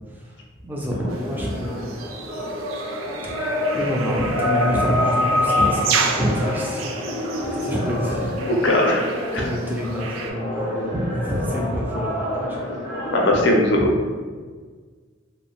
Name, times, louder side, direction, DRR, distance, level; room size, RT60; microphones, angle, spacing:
voice 1, 0.6-1.9 3.2-3.3 3.7-8.4 9.4-12.6 13.3-13.9, equal, 10° right, -3 dB, 0.3 m, -27 dB
sound 1, 0.9-13.4, left 1 dB, 70° right, 0.9 m, -28 dB
sound 2, 1.9-10.3, right 1 dB, 85° right, 0.3 m, -27 dB
voice 2, 8.4-9.0 9.3-9.4 13.1-13.9, left 1 dB, 60° left, -1 dB, 0.5 m, -19 dB
2.6 x 2.1 x 2.8 m, 1.5 s
head